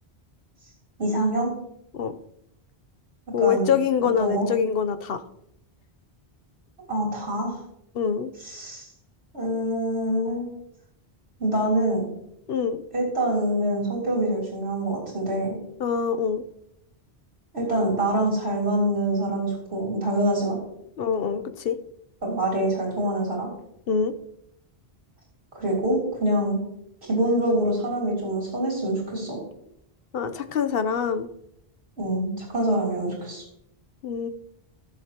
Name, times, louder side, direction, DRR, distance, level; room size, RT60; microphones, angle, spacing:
voice 1, 1.0-1.5 3.4-3.7 4.2-4.5 6.9-7.6 8.4-8.9 9.3-10.5 11.4-12.0 12.9-15.6 17.5-20.6 22.2-23.5 25.5-26.6 27.0-29.4 32.0-33.4, right 1 dB, 80° right, -3 dB, 3.6 m, -25 dB
voice 2, 3.3-5.2 7.9-8.3 12.5-12.8 15.8-16.4 21.0-21.8 23.9-24.1 30.1-31.3 34.0-34.3, left 7 dB, 65° left, 10 dB, 0.9 m, -25 dB
17.0 x 7.4 x 2.9 m, 0.77 s
omnidirectional pair, 1.1 m